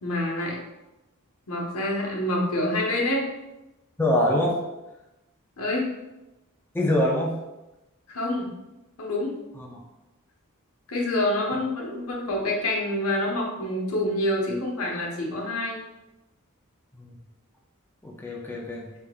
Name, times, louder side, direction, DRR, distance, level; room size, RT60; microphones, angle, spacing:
voice 1, 0.0-0.6 1.5-3.3 5.6-5.9 8.1-8.5 9.0-9.4 10.9-15.8 18.3-18.4, left 1 dB, 85° left, -1 dB, 1.0 m, -27 dB
voice 2, 4.0-4.6 6.7-7.4 9.6-9.8 16.9-17.1 18.0-18.9, left 1 dB, 10° left, -2 dB, 0.5 m, -24 dB
5.1 x 3.5 x 2.2 m, 0.99 s
head